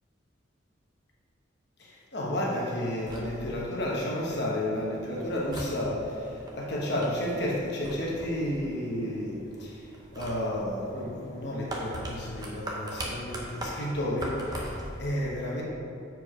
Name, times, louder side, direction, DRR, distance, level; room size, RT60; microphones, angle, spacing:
voice 1, 1.8-15.6, left 1 dB, 55° left, -3 dB, 1.1 m, -32 dB
sound 1, 2.9-15.0, right 1 dB, 20° right, 0.8 m, -41 dB
6.9 x 4.7 x 4.9 m, 2.6 s
head